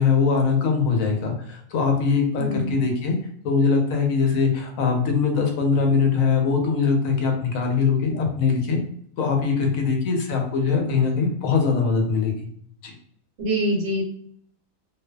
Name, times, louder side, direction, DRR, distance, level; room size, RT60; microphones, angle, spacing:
voice 1, 0.0-3.2 3.4-8.8 9.2-12.5 12.8-12.9, left 5 dB, 85° left, 2 dB, 1.1 m, -22 dB
voice 2, 2.4-2.7 13.4-14.0, right 1 dB, 60° right, -1 dB, 1.0 m, -24 dB
2.5 x 2.3 x 2.2 m, 0.63 s
omnidirectional pair, 1.4 m